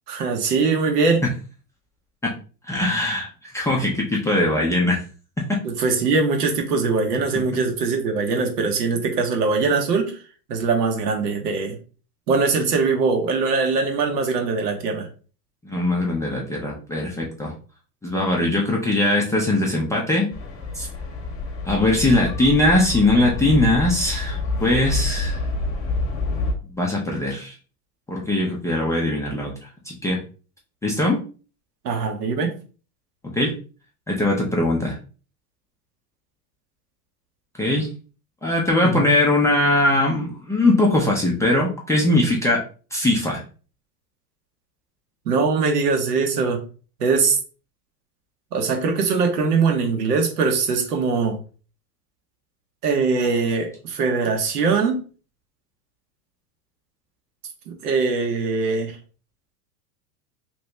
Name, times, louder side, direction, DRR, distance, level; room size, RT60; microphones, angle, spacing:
voice 1, 0.1-1.2 5.6-10.2 10.5-11.8 12.3-15.1 31.8-32.5 38.8-39.1 45.2-46.6 47.0-47.4 48.5-51.4 52.8-55.0 57.7-59.0, right 4 dB, 85° right, 4 dB, 1.1 m, -22 dB
voice 2, 2.7-3.3 3.5-5.0 5.5-5.6 15.6-17.5 18.0-20.3 20.7-20.9 21.7-25.4 26.8-27.5 28.1-29.5 29.9-30.2 30.8-31.2 33.3-33.5 34.1-35.0 37.6-37.9 38.4-42.6 42.9-43.4, left 1 dB, 5° left, -3 dB, 0.4 m, -20 dB
sound 1, 20.3-26.5, left 3 dB, 30° left, 0.8 m, -27 dB
3.0 x 2.7 x 3.3 m, 0.38 s
hypercardioid pair, 115°, 46 cm